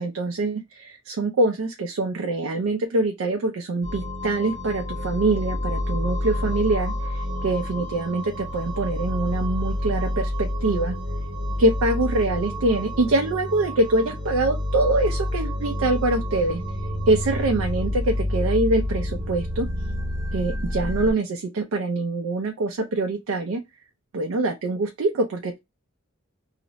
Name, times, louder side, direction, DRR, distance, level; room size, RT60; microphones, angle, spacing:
voice 1, 0.0-10.9 11.6-16.6 17.1-19.7 20.3-23.6 24.1-25.6, right 2 dB, 75° right, 0.4 m, -24 dB
Massive Zebra Drone, 3.8-21.1, left 1 dB, 50° right, 0.8 m, -28 dB
2.4 x 2.0 x 3.8 m
head